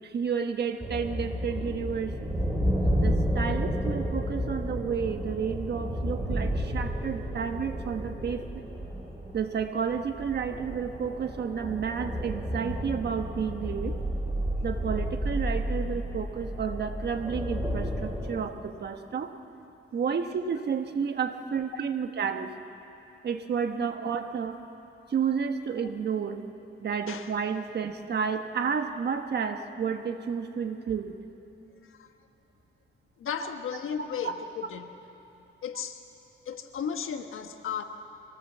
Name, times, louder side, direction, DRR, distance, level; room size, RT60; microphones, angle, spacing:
voice 1, 0.0-2.3 3.0-8.7 9.3-13.9 14.6-19.3 19.9-22.5 23.2-24.6 25.1-26.4 26.8-31.1 34.2-34.3, right 6 dB, 55° right, 7 dB, 1.3 m, -31 dB
sound 1, 0.8-18.4, equal, 10° right, 4.0 m, -31 dB
voice 2, 33.2-34.9 35.6-36.0 36.4-37.8, left 7 dB, 80° left, 6 dB, 1.4 m, -35 dB
24.0 x 18.5 x 7.4 m, 3.0 s
cardioid pair, 120°, 21 cm